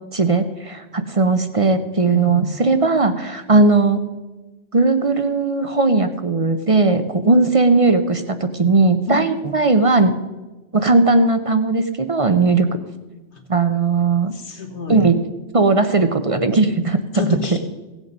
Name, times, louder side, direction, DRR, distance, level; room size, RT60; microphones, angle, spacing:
voice 1, 0.1-4.0 4.7-10.1 10.7-12.7 13.5-14.3 14.9-15.2 15.5-17.6, right 3 dB, 40° right, 9 dB, 0.6 m, -17 dB
voice 2, 2.1-2.5 9.1-9.4 12.5-12.6 13.3-13.4 14.3-15.1 17.1-17.6, left 5 dB, 75° left, 3 dB, 1.9 m, -28 dB
16.5 x 8.1 x 5.4 m, 1.2 s
omnidirectional pair, 1.2 m